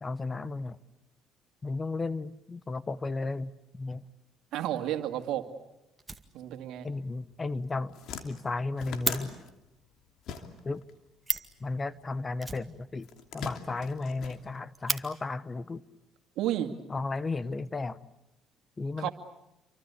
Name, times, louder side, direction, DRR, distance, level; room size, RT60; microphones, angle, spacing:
voice 1, 0.0-0.8 1.6-4.0 6.8-8.0 8.2-9.3 10.6-10.8 11.6-13.1 13.3-15.8 16.9-18.1 18.8-19.1, left 3 dB, 25° left, 17 dB, 1.1 m, -34 dB
voice 2, 4.5-5.5 6.3-6.9 16.4-16.7 19.0-19.1, right 12 dB, 75° right, 7 dB, 2.3 m, -31 dB
Fire, 6.0-6.8 7.1-7.2 7.5-7.6 7.9-8.0 8.2-9.2 10.9-11.0 11.2-11.6 12.4-13.3 13.6-13.7 14.0-14.1 14.5-15.0 16.0-16.1 16.8-17.4, right 3 dB, 20° right, 2.1 m, -35 dB
sound 1, 7.3-7.5 7.7-10.9 11.2-12.4 13.0-15.0, left 7 dB, 70° left, 2.9 m, -42 dB
29.0 x 24.5 x 8.4 m, 0.91 s
supercardioid pair, 80°, 0 cm